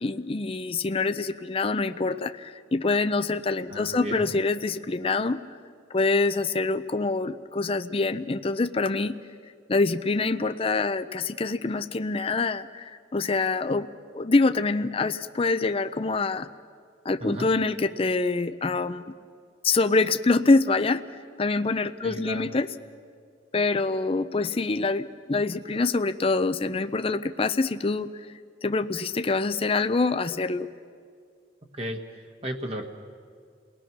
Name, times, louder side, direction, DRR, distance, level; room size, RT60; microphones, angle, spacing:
voice 1, 0.0-5.4 5.9-9.2 9.7-13.9 14.1-16.5 17.0-19.1 19.6-21.0 21.4-22.7 23.5-28.1 28.6-30.7, left 3 dB, 30° left, 11 dB, 0.6 m, -25 dB
voice 2, 3.7-4.3 17.2-17.5 22.0-22.5 31.7-32.8, equal, 35° right, 3 dB, 1.4 m, -34 dB
30.0 x 19.5 x 6.1 m, 2.1 s
head